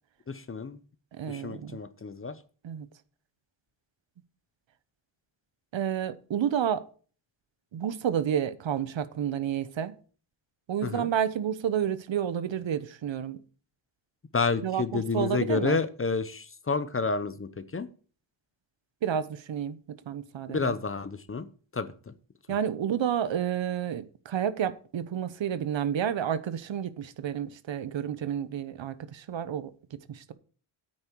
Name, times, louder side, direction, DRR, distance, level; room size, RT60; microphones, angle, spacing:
voice 1, 0.3-0.8 1.2-2.4 10.8-11.1 14.3-17.9 20.5-21.5 21.7-22.1, left 4 dB, 25° left, 0.8 m, -30 dB
voice 2, 1.1-1.8 2.6-2.9 5.7-6.8 7.7-9.9 10.7-13.4 14.6-15.8 19.0-20.8 22.5-30.3, right 9 dB, 65° right, 1.1 m, -30 dB
9.5 x 9.0 x 4.6 m
wide cardioid pair, 130°, 49 cm